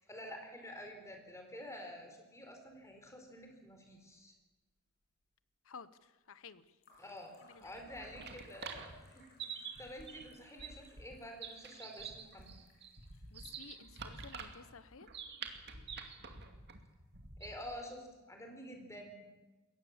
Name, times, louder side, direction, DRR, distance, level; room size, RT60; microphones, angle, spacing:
voice 1, 0.1-4.3 7.0-7.3 7.6-12.6 17.4-19.3, left 1 dB, 15° left, 3 dB, 4.3 m, -49 dB
sound 1, 3.6-4.4 4.7-5.3 6.8-17.5, left 2 dB, 50° left, 6.1 m, -69 dB
voice 2, 5.6-6.8 7.4-7.8 8.2-8.3 13.3-15.1, left 5 dB, 65° left, 15 dB, 1.0 m, -54 dB
sound 2, 7.6-17.8, right 5 dB, 50° right, 2.3 m, -48 dB
22.0 x 17.5 x 7.3 m, 1.2 s
head